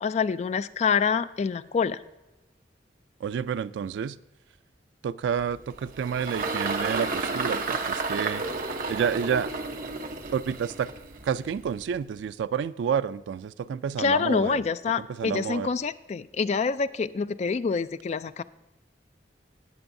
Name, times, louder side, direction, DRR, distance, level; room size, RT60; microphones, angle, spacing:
voice 1, 0.0-2.0 14.0-18.4, left 5 dB, 40° left, 0.3 m, -26 dB
voice 2, 3.2-4.2 5.0-8.4 8.9-9.5 10.3-10.9 11.2-14.6 15.0-15.7, right 7 dB, 85° right, 0.3 m, -29 dB
Engine, 5.4-12.0, right 3 dB, 50° right, 1.0 m, -32 dB
18.0 x 6.9 x 2.6 m
head